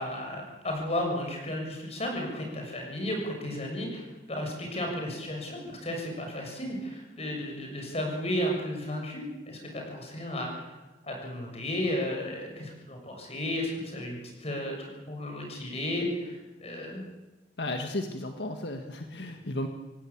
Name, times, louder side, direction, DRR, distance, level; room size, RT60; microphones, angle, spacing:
voice 1, 0.0-10.7 11.0-17.0, left 1 dB, 35° left, 1 dB, 7.1 m, -33 dB
voice 2, 17.6-19.7, left 1 dB, 75° left, 5 dB, 1.8 m, -34 dB
27.0 x 17.0 x 8.8 m, 1.1 s
head